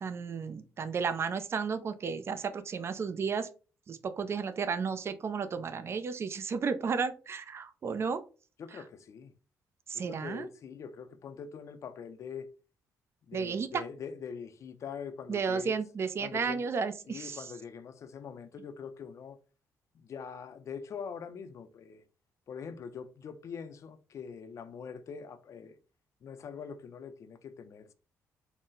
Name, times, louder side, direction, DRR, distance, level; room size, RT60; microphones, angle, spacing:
voice 1, 0.0-3.5 3.9-8.2 9.9-10.4 13.3-13.8 15.3-17.4, right 5 dB, 45° right, 0.5 m, -33 dB
voice 2, 8.6-9.3 9.9-12.5 13.3-15.8 16.2-16.7 17.1-19.4 19.9-22.0 22.5-25.8 26.2-27.9, left 6 dB, 55° left, 0.5 m, -43 dB
4.1 x 2.1 x 3.7 m
cardioid pair, 90°, 6 cm